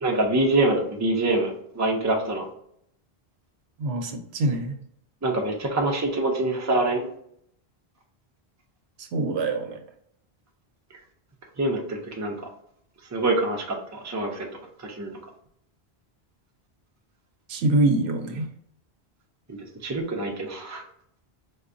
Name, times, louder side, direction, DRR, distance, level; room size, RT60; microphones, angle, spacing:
voice 1, 0.0-2.4 5.2-7.0 11.6-12.3 13.1-14.5 14.8-15.1 19.5-20.8, right 2 dB, 20° right, 0 dB, 0.5 m, -25 dB
voice 2, 3.8-4.7 9.0-9.8 17.5-18.5, right 2 dB, 80° right, 6 dB, 0.9 m, -24 dB
4.5 x 2.2 x 2.5 m, 0.70 s
omnidirectional pair, 1.1 m